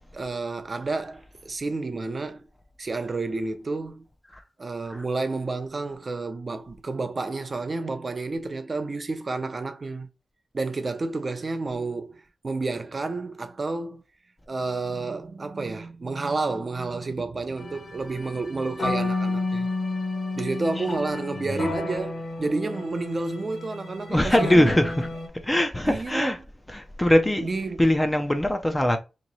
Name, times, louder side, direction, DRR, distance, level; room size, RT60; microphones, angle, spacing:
voice 1, 0.1-2.5 2.8-4.0 4.6-10.1 10.5-14.0 14.5-19.7 20.4-24.7 25.9-26.3 27.4-27.8, right 3 dB, 35° right, 0.5 m, -30 dB
sound 1, 17.6-25.3, left 2 dB, 50° left, 1.1 m, -31 dB
voice 2, 24.1-25.1 25.4-26.4 26.7-29.0, left 1 dB, 10° left, 0.5 m, -22 dB
3.0 x 2.7 x 4.0 m
wide cardioid pair, 135°, 0 cm